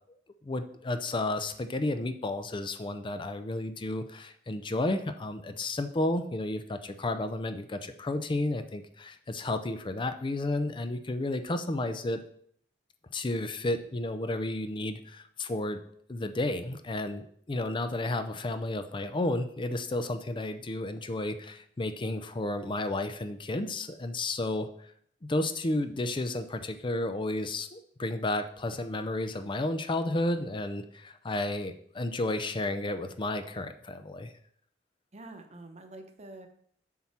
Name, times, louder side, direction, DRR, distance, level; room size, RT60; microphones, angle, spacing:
voice 1, 0.4-12.2 13.1-15.8 16.1-24.9 25.2-34.3, left 2 dB, 25° left, 9 dB, 0.5 m, -32 dB
voice 2, 35.1-36.5, right 2 dB, 40° right, 5 dB, 1.0 m, -46 dB
7.4 x 4.3 x 5.9 m, 0.63 s
head